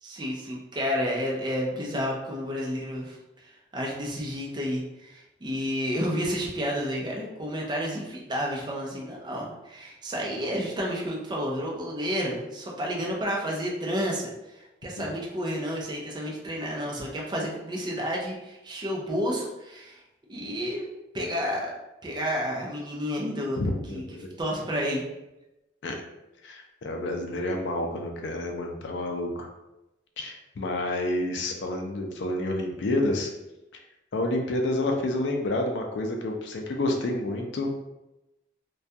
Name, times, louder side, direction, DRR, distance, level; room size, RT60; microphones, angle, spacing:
voice 1, 0.0-3.2 3.4-20.0 20.3-20.9 21.1-21.7 22.0-23.6 23.9-24.0 24.4-25.0, equal, 25° right, -2 dB, 0.4 m, -31 dB
voice 2, 23.6-24.3 25.8-26.0 26.4-29.5 30.2-33.3 34.1-37.7, left 1 dB, 70° left, 2 dB, 0.4 m, -29 dB
2.2 x 2.2 x 2.6 m, 0.96 s
head